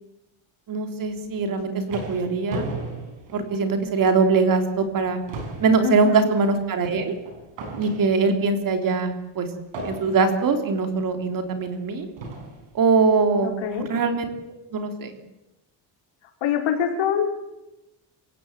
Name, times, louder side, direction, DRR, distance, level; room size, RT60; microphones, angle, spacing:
voice 1, 0.7-2.7 3.3-5.2 5.6-7.1 7.8-9.5 9.8-12.1 12.7-14.3 14.7-15.2, right 4 dB, 45° right, 6 dB, 3.5 m, -22 dB
sound 1, 1.4-4.0 4.5-4.6 5.0-8.5 9.7-10.5 11.4-11.5 12.2-12.7, right 2 dB, 80° right, 6.2 m, -36 dB
voice 2, 5.8-6.3 13.4-13.9 16.4-17.3, left 8 dB, 80° left, 3 dB, 5.3 m, -25 dB
27.0 x 16.5 x 9.0 m, 0.96 s
cardioid pair, 165°, 45 cm